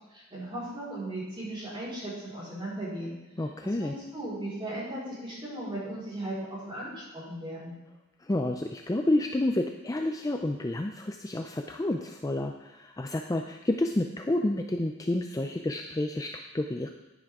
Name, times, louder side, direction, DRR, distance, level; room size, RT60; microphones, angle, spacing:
voice 1, 0.1-3.1 3.8-7.8, right 1 dB, 25° right, -8 dB, 4.4 m, -37 dB
voice 2, 3.4-3.9 8.2-16.9, left 1 dB, 15° left, 4 dB, 0.4 m, -29 dB
10.5 x 10.5 x 3.7 m, 1.0 s
head